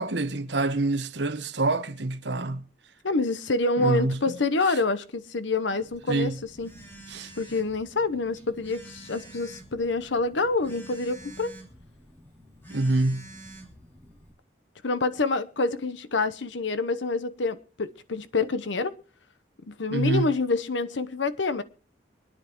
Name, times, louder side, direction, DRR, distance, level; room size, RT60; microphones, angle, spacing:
voice 1, 0.0-2.7 3.8-4.2 4.7-4.8 6.1-6.4 7.1-7.3 12.7-13.3 19.9-20.3, right 2 dB, 70° right, 1.1 m, -26 dB
voice 2, 3.0-6.7 7.4-11.5 14.8-18.9 19.7-21.6, left 3 dB, 80° left, 0.9 m, -27 dB
Telephone, 5.8-14.3, right 1 dB, 10° left, 2.8 m, -48 dB
24.5 x 10.0 x 3.0 m
head